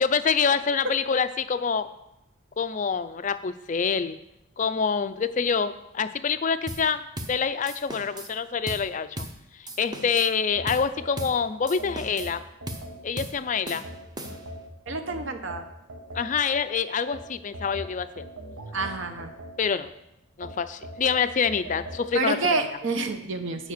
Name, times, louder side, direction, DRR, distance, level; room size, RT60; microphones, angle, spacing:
voice 1, 0.0-1.9 2.6-4.2 4.6-7.0 7.3-9.3 9.6-12.4 13.0-13.8 16.1-18.2 19.6-19.9 20.4-22.6, left 6 dB, 35° left, 12 dB, 0.4 m, -26 dB
sound 1, 6.7-6.9 7.2-7.4 7.7-8.3 8.7-8.9 9.2-9.4 9.7-10.3 10.7-10.9 11.2-11.4 11.7-12.4 12.7-12.9 13.2-13.4 13.7-14.6, right 1 dB, 20° right, 0.7 m, -37 dB
sound 2, 10.5-13.3 13.8-16.6 17.1-19.9 20.4-22.0, right 1 dB, 75° right, 1.3 m, -41 dB
voice 2, 14.9-15.6 18.7-19.3 22.1-23.7, right 3 dB, 60° right, 7 dB, 0.9 m, -28 dB
9.3 x 5.0 x 6.6 m, 0.88 s
head